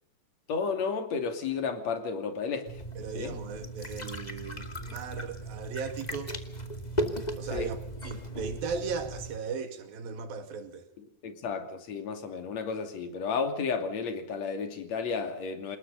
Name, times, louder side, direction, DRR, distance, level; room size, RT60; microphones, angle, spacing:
voice 1, 0.5-2.8 3.2-3.4 7.5-7.7 11.0-15.8, left 5 dB, 50° left, 3.7 m, -32 dB
sound 1, 2.6-9.4, right 1 dB, 15° left, 1.5 m, -37 dB
voice 2, 3.0-6.3 7.4-10.9, right 5 dB, 75° right, 4.0 m, -37 dB
27.5 x 20.5 x 5.4 m
omnidirectional pair, 4.2 m